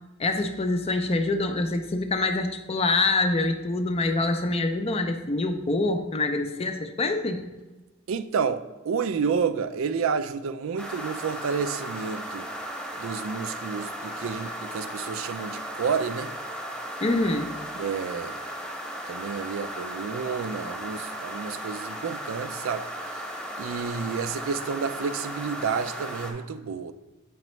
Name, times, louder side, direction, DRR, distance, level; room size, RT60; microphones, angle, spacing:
voice 1, 0.2-7.4 17.0-17.6, left 2 dB, 30° left, 7 dB, 0.5 m, -25 dB
voice 2, 8.1-12.5 13.0-16.3 17.8-18.4 19.1-22.9 23.6-26.9, right 6 dB, 75° right, 12 dB, 0.4 m, -30 dB
sound 1, 10.8-26.3, equal, 5° left, 1.0 m, -36 dB
7.7 x 5.2 x 3.1 m, 1.2 s
head